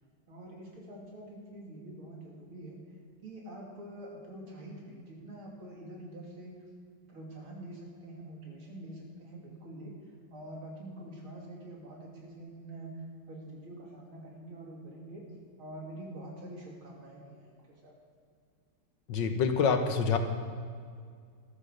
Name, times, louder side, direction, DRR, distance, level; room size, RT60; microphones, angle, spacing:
voice 1, 0.3-2.8 3.2-6.5 7.1-9.9 10.3-12.9 13.3-15.2 15.6-17.5 17.8-17.9, right 1 dB, 90° right, -2 dB, 3.6 m, -46 dB
voice 2, 19.1-20.2, left 6 dB, 65° left, 7 dB, 1.6 m, -26 dB
13.5 x 11.5 x 6.6 m, 2.1 s
omnidirectional pair, 2.2 m